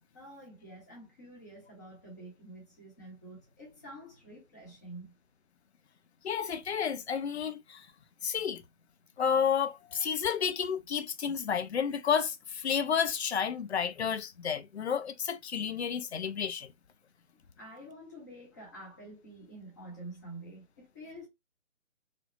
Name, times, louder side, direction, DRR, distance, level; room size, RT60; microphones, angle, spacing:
voice 1, 0.1-5.1 17.6-21.3, right 1 dB, 15° left, 0.7 m, -48 dB
voice 2, 6.2-7.9 8.2-8.6 9.2-16.7, left 7 dB, 55° left, 0.5 m, -31 dB
3.1 x 2.0 x 2.5 m
figure-of-eight pair, 145°, 40 cm